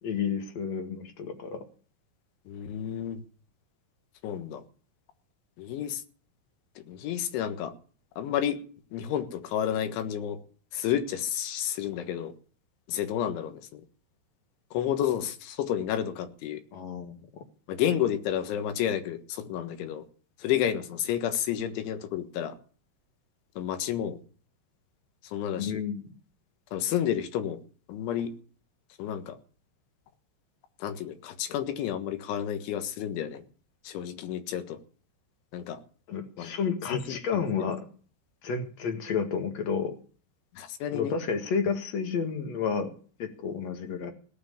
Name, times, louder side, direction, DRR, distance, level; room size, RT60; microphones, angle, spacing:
voice 1, 0.0-1.6 16.7-17.4 25.6-26.1 36.1-37.8 38.4-40.0 40.9-42.9 43.2-44.1, left 6 dB, 55° left, 6 dB, 2.1 m, -31 dB
voice 2, 2.5-3.2 4.2-4.6 5.6-6.0 6.9-7.7 8.2-8.6 8.9-10.4 10.7-12.3 12.9-13.8 14.7-16.6 17.7-20.0 20.4-22.6 23.6-24.2 25.2-25.8 26.7-27.6 27.9-28.3 29.0-29.4 30.8-33.4 33.9-34.8 35.5-35.8 36.4-36.5 36.9-37.7 40.6-41.1, left 10 dB, 85° left, 8 dB, 3.9 m, -30 dB
18.0 x 6.2 x 8.6 m, 0.42 s
omnidirectional pair, 5.4 m